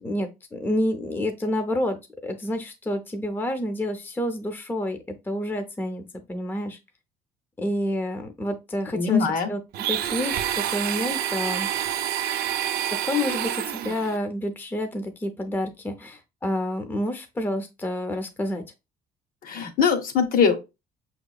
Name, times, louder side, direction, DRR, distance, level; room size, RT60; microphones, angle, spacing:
voice 1, 0.0-5.0 5.3-6.0 6.3-6.8 7.6-9.6 9.9-11.7 13.0-18.6, left 1 dB, 10° left, 0.6 m, -29 dB
voice 2, 8.9-9.5 19.4-20.6, left 6 dB, 55° left, 0.8 m, -22 dB
Domestic sounds home sounds, 9.7-14.2, right 11 dB, 70° right, 0.5 m, -28 dB
5.4 x 2.9 x 2.3 m
cardioid pair, 110°, 17 cm